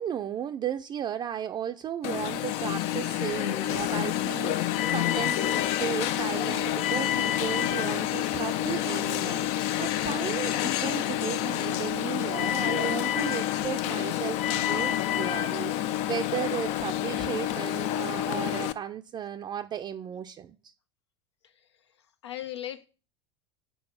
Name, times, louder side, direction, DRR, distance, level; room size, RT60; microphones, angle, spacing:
voice 1, 0.0-20.6, right 9 dB, 30° right, 0.5 m, -35 dB
Alarm, 2.0-18.7, left 12 dB, 50° left, 0.5 m, -28 dB
voice 2, 22.0-22.9, left 12 dB, 80° left, 0.8 m, -39 dB
6.9 x 4.7 x 5.6 m
figure-of-eight pair, 80°, 14 cm